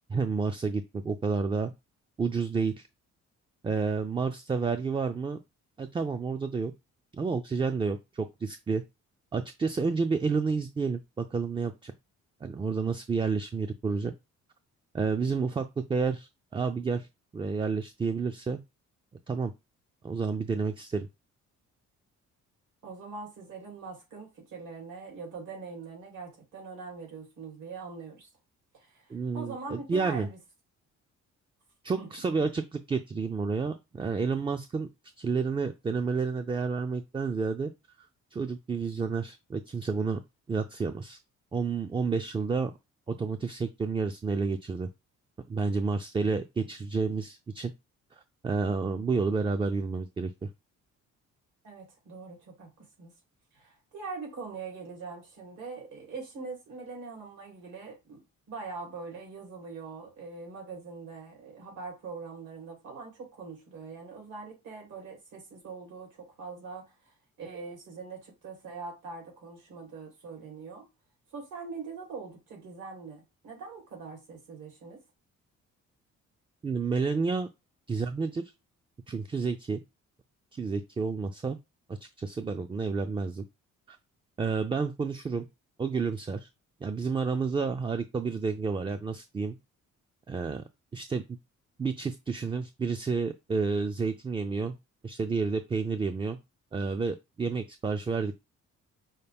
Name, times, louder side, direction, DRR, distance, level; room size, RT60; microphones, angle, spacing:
voice 1, 0.1-1.7 2.2-2.9 3.6-5.4 5.8-6.7 7.1-8.8 9.3-11.9 12.4-14.1 14.9-17.1 17.3-18.6 19.3-19.5 20.0-21.1 29.1-30.3 31.8-34.9 35.2-37.7 38.3-40.2 40.5-41.2 41.5-42.7 43.1-44.9 45.5-47.7 48.4-50.5 76.6-77.5 77.9-78.5 79.1-79.8 80.5-81.6 81.9-83.4 83.9-84.0 84.4-85.5 85.8-86.5 86.8-89.6 90.3-90.6 90.9-91.2 91.8-94.7 95.0-96.4 96.7-98.4, right 4 dB, 20° right, 0.3 m, -30 dB
voice 2, 22.8-28.3 28.7-30.4 32.0-32.1 51.6-53.1 53.5-58.2 58.5-67.1 67.4-70.8 71.3-75.0, right 4 dB, 80° right, 2.8 m, -42 dB
5.6 x 2.2 x 3.4 m
cardioid pair, 90°, 30 cm